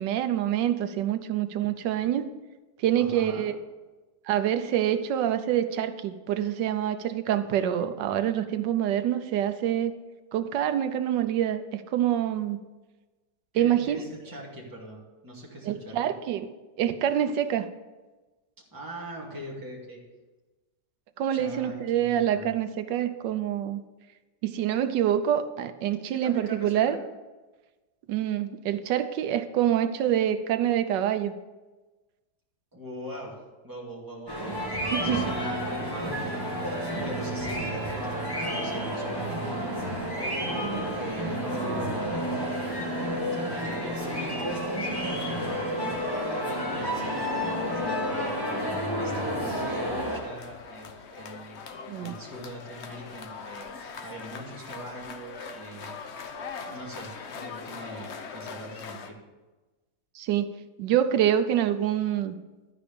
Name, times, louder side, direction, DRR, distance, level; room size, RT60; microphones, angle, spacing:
voice 1, 0.0-2.3 2.8-3.6 4.2-9.9 10.3-12.6 13.5-14.0 15.7-16.5 16.8-17.7 21.2-23.8 24.4-27.0 28.1-31.3 34.9-35.3 51.9-52.2 60.1-60.5 60.8-62.4, right 10 dB, 85° right, 9 dB, 1.3 m, -26 dB
voice 2, 3.0-3.4 13.5-16.1 18.7-20.0 21.3-22.5 26.0-27.0 32.7-34.6 35.0-39.9 40.2-42.9 43.5-46.0 46.3-51.7 52.0-55.9 56.7-59.2, right 1 dB, 10° right, -4 dB, 2.1 m, -42 dB
sound 1, 34.3-50.2, equal, 15° left, 2.1 m, -30 dB
sound 2, 50.1-59.1, left 5 dB, 55° left, 0.8 m, -41 dB
12.5 x 5.0 x 6.8 m, 1.2 s
omnidirectional pair, 1.9 m